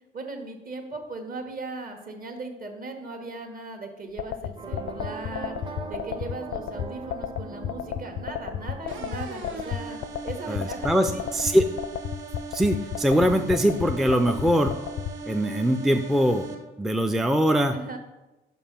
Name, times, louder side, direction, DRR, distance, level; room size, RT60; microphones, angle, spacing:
voice 1, 0.1-10.0 10.2-11.4 17.7-18.0, right 3 dB, 45° right, 4 dB, 1.4 m, -38 dB
sound 1, 4.2-15.1, left 10 dB, 65° left, 0.4 m, -31 dB
sound 2, 4.6-10.8, right 3 dB, 25° right, 0.7 m, -41 dB
sound 3, 8.9-16.6, right 3 dB, 75° right, 1.0 m, -39 dB
voice 2, 10.5-11.6 12.5-14.7 15.3-16.5 16.8-17.7, equal, ahead, 6 dB, 0.4 m, -22 dB
5.4 x 4.6 x 5.8 m, 1.1 s
cardioid pair, 90°, 20 cm